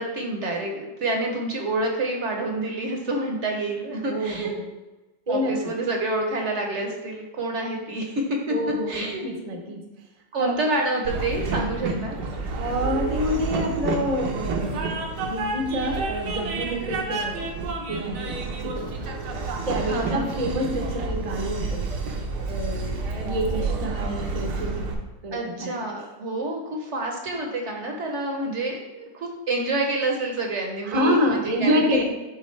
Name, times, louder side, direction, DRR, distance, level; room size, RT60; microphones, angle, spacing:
voice 1, 0.0-4.5 5.3-8.5 8.9-9.2 10.3-12.2 19.8-20.3 25.3-32.0, right 2 dB, 55° right, 1 dB, 1.0 m, -28 dB
voice 2, 4.1-4.6 5.3-5.6 8.5-9.8 10.4-10.6 12.5-17.5 17.9-19.1 19.7-21.9 22.5-24.9 25.2-25.8 30.9-32.0, equal, 35° right, 2 dB, 0.6 m, -27 dB
Train, 11.0-24.9, right 3 dB, 80° right, 1.5 m, -29 dB
9.6 x 3.6 x 3.2 m, 1.1 s
omnidirectional pair, 1.8 m